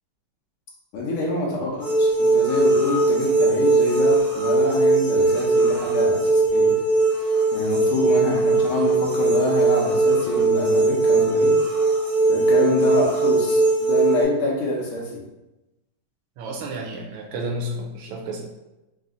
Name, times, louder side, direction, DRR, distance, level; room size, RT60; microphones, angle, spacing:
voice 1, 0.9-6.7 7.5-11.5 12.3-15.2, left 2 dB, 70° left, -2 dB, 1.7 m, -26 dB
sound 1, 1.8-14.2, right 3 dB, 15° right, 0.4 m, -19 dB
voice 2, 16.4-18.4, right 1 dB, 80° right, 1 dB, 1.4 m, -31 dB
4.1 x 2.6 x 3.7 m, 0.99 s
omnidirectional pair, 2.4 m